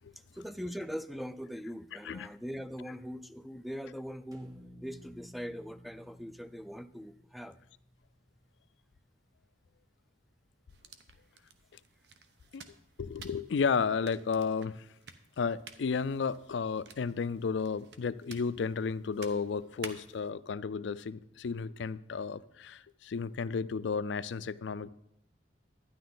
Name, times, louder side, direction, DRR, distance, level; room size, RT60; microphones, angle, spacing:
voice 1, 0.1-4.5 4.8-7.6, equal, ahead, 0.3 m, -41 dB
sound 1, 4.3-8.5, equal, 20° right, 1.3 m, -53 dB
sound 2, 10.7-20.3, right 5 dB, 70° right, 0.9 m, -53 dB
voice 2, 13.0-14.9 15.4-24.9, left 5 dB, 85° left, 0.4 m, -33 dB
12.0 x 10.0 x 3.9 m
head